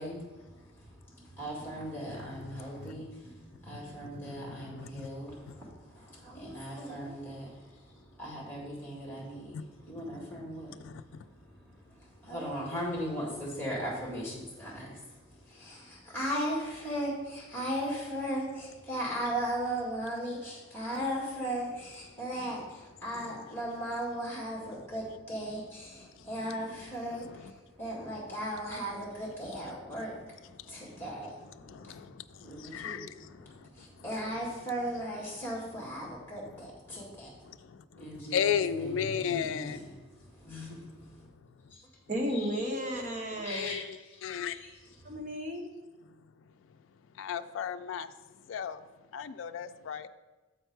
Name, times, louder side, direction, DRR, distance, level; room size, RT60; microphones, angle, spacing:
voice 1, 0.0-37.5 37.9-41.3 41.7-41.8 42.3-42.5 43.3-43.8 44.5-44.7, equal, 10° left, -4 dB, 1.9 m, -38 dB
voice 2, 2.2-2.9 4.0-5.1 5.5-5.6 9.5-9.6 10.8-11.0 23.1-23.4 27.1-27.5 30.8-31.0 31.6-33.7 37.5-39.8 43.5-43.9 44.2-44.6 47.2-48.1 48.5-48.8 49.1-50.1, left 7 dB, 85° left, 11 dB, 0.3 m, -35 dB
voice 3, 42.1-43.7 45.0-45.6, equal, 40° right, 1 dB, 1.0 m, -33 dB
7.6 x 4.5 x 4.6 m, 1.2 s
head